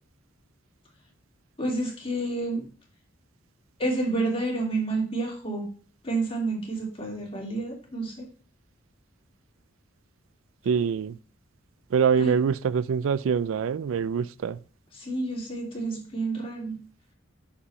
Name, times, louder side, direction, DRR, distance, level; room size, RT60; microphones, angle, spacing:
voice 1, 1.6-2.6 3.8-5.7 6.0-8.3 12.2-12.3 14.9-16.7, right 2 dB, 30° left, 2.9 m, -29 dB
voice 2, 10.6-11.2 11.9-14.6, right 6 dB, 90° right, 0.4 m, -24 dB
6.9 x 4.8 x 5.6 m
head